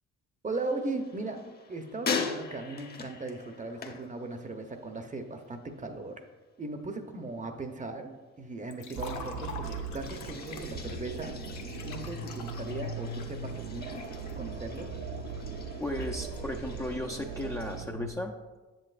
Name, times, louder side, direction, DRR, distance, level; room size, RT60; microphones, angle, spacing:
voice 1, 0.4-1.4 1.7-6.2 6.6-11.3 11.8-14.0 14.4-14.9, right 3 dB, 25° right, 6 dB, 0.7 m, -38 dB
sound 1, 0.5-5.0 5.2-5.8 9.9-17.8, left 5 dB, 30° left, 0.9 m, -41 dB
Liquid, 8.7-14.8, left 5 dB, 70° left, 0.9 m, -46 dB
sound 2, 9.0-18.1, right 3 dB, 80° right, 0.6 m, -39 dB
voice 2, 15.8-18.3, left 1 dB, 10° left, 0 dB, 0.5 m, -35 dB
7.7 x 7.4 x 2.5 m, 1.3 s
cardioid pair, 90°, 30 cm